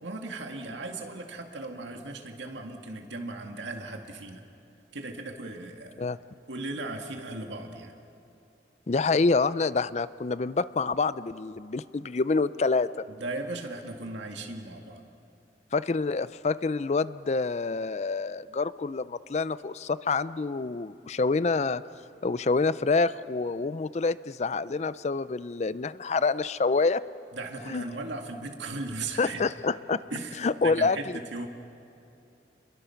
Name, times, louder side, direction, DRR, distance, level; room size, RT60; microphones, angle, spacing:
voice 1, 0.0-4.4 4.9-6.1 6.5-7.9 13.1-15.0 27.3-29.4 30.1-31.5, right 2 dB, 90° right, 3 dB, 2.1 m, -37 dB
voice 2, 8.9-12.9 15.7-21.8 22.2-27.0 27.7-27.8 29.2-30.0 30.4-31.2, left 4 dB, 40° left, 16 dB, 0.4 m, -27 dB
29.0 x 22.0 x 5.8 m, 2.8 s
head